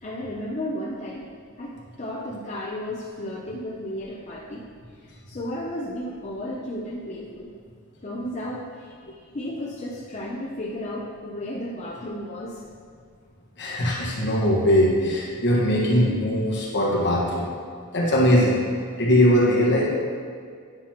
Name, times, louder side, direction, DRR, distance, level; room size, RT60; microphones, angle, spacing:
voice 1, 0.0-4.7 5.0-7.5 8.0-12.6, left 1 dB, 30° left, -5 dB, 0.6 m, -34 dB
voice 2, 13.6-17.5 17.9-18.6 19.0-19.9, equal, 55° left, -4 dB, 1.5 m, -20 dB
9.8 x 5.8 x 3.0 m, 2.1 s
head